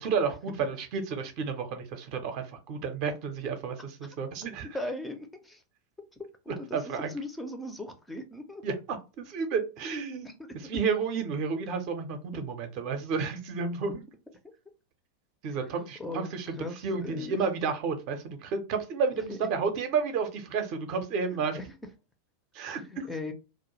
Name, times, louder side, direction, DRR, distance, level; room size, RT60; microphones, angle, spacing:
voice 1, 0.0-4.7 6.5-7.1 8.6-8.7 9.2-10.3 10.6-14.0 15.4-16.6 16.8-21.6 22.5-23.1, right 5 dB, 45° right, 0.5 m, -31 dB
voice 2, 4.6-5.6 6.6-6.8 7.1-8.6 10.2-10.3 15.8-17.4 19.1-19.5 21.3-21.7 22.6-23.3, left 2 dB, 5° left, 0.4 m, -39 dB
2.2 x 2.0 x 3.0 m
figure-of-eight pair, 90°, 0 cm